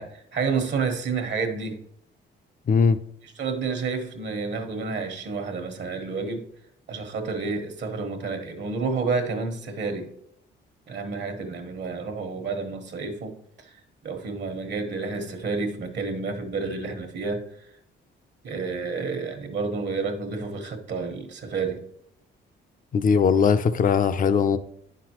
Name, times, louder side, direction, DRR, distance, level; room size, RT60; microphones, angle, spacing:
voice 1, 0.0-1.8 3.2-6.5 6.9-10.1 10.9-13.3 13.6-13.7 14.0-17.4 18.4-21.8, right 4 dB, 60° right, 1.3 m, -30 dB
voice 2, 2.7-3.0 22.9-24.6, left 6 dB, 45° left, 0.6 m, -20 dB
9.2 x 6.0 x 3.0 m
cardioid pair, 90°, 20 cm